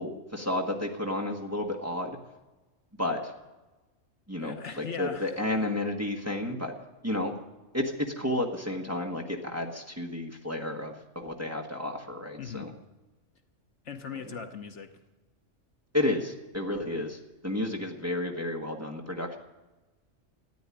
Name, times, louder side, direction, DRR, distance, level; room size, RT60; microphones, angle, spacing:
voice 1, 0.0-2.2 3.0-3.3 4.3-6.7 7.0-7.3 7.7-12.7 15.9-19.4, left 1 dB, 10° right, 1 dB, 1.4 m, -31 dB
voice 2, 4.4-5.4 12.4-12.8 13.8-14.9, left 5 dB, 65° left, 6 dB, 1.3 m, -39 dB
14.0 x 9.9 x 9.9 m, 1.1 s
omnidirectional pair, 1.3 m